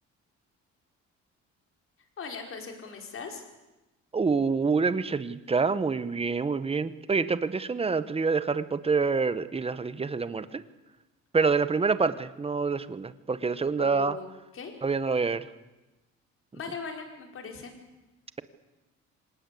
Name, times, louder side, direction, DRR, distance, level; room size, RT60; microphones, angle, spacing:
voice 1, 2.2-3.4 13.8-14.7 16.5-17.7, left 5 dB, 45° left, 3 dB, 4.9 m, -39 dB
voice 2, 4.1-10.6 11.3-14.2 14.8-15.5, right 4 dB, 20° right, 13 dB, 1.1 m, -27 dB
26.0 x 19.0 x 8.5 m, 1.1 s
cardioid pair, 140°, 30 cm